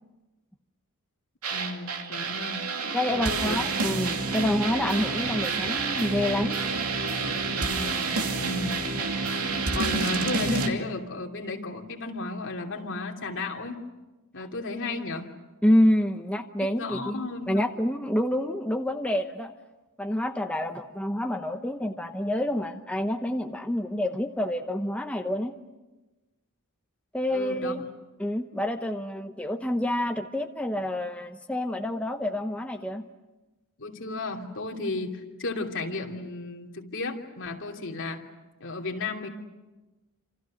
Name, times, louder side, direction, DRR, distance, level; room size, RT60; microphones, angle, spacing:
sound 1, 1.4-10.7, right 4 dB, 75° right, 2.7 m, -28 dB
voice 1, 1.5-2.7 3.0-3.7 7.5-8.9 9.6-13.8 14.3-15.3 16.6-17.8 27.3-27.7 29.2-29.3 33.8-38.3 38.6-39.3, left 2 dB, 55° left, 1 dB, 3.0 m, -34 dB
voice 2, 2.9-6.6 15.6-19.5 20.0-25.5 27.1-27.9 28.2-33.1, left 1 dB, 5° left, 4 dB, 0.9 m, -27 dB
28.0 x 27.5 x 6.5 m, 1.1 s
head